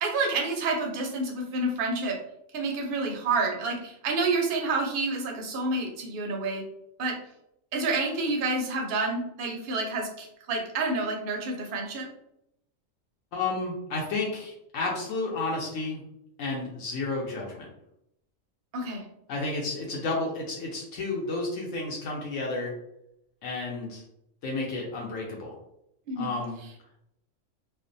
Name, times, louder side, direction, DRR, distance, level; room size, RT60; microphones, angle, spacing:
voice 1, 0.0-2.2 2.5-6.6 7.0-7.2 7.7-12.1 18.7-19.0 26.1-26.3, right 3 dB, 55° right, 1 dB, 0.6 m, -29 dB
voice 2, 13.3-16.0 16.4-17.7 19.3-22.7 23.4-24.0 24.4-25.6 26.2-26.5, left 3 dB, 75° left, -2 dB, 0.9 m, -31 dB
2.5 x 2.1 x 2.5 m, 0.79 s
omnidirectional pair, 1.4 m